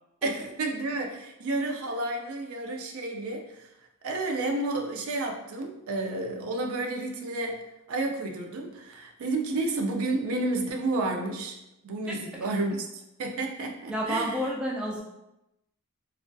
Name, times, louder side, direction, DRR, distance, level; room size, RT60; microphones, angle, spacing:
voice 1, 0.2-3.7 4.0-11.5 11.8-12.9 13.2-14.3, right 2 dB, 75° right, 2 dB, 0.4 m, -31 dB
voice 2, 13.9-15.0, equal, 5° right, -4 dB, 0.3 m, -30 dB
2.3 x 2.2 x 2.5 m, 0.92 s
head